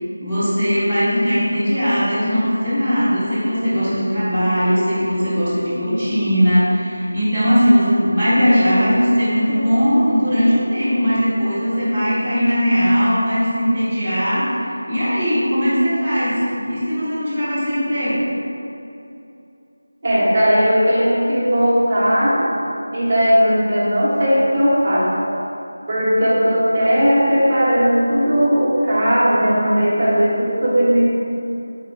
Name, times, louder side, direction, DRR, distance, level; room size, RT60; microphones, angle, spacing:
voice 1, 0.2-18.2, equal, ahead, -26 dB, 0.9 m, -19 dB
voice 2, 20.0-22.4 22.9-25.1 25.9-31.2, equal, 25° right, -9 dB, 1.0 m, -17 dB
4.4 x 3.4 x 3.2 m, 2.7 s
figure-of-eight pair, 175°, 0 cm